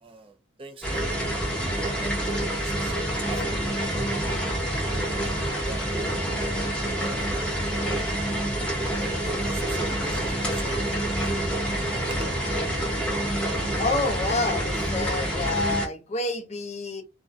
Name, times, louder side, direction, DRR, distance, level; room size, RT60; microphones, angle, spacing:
voice 1, 0.0-0.3 0.6-1.2 1.6-4.0 4.9-5.4 5.7-6.2 6.8-7.7 9.0-11.6 12.0-12.3, right 2 dB, 30° right, 0.4 m, -41 dB
sound 1, 0.8-15.9, right 1 dB, 5° left, 0.8 m, -27 dB
voice 2, 13.7-17.0, left 3 dB, 35° left, 0.5 m, -28 dB
2.4 x 2.1 x 2.5 m
head